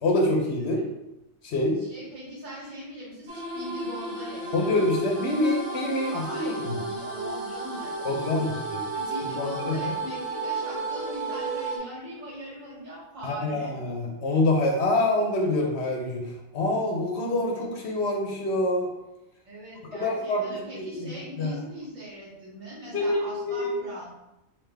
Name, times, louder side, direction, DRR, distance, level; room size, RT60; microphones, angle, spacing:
voice 1, 0.0-0.8 1.4-1.8 4.5-6.8 8.0-8.8 9.4-9.9 13.2-18.9 20.0-21.5 22.9-23.7, left 2 dB, 60° left, 0 dB, 0.8 m, -26 dB
voice 2, 1.8-4.7 6.1-8.5 8.9-13.7 19.5-24.1, right 1 dB, 75° right, -6 dB, 1.9 m, -41 dB
sound 1, 3.3-11.8, right 2 dB, 60° right, 1.0 m, -33 dB
3.7 x 2.7 x 3.3 m, 0.92 s
omnidirectional pair, 1.4 m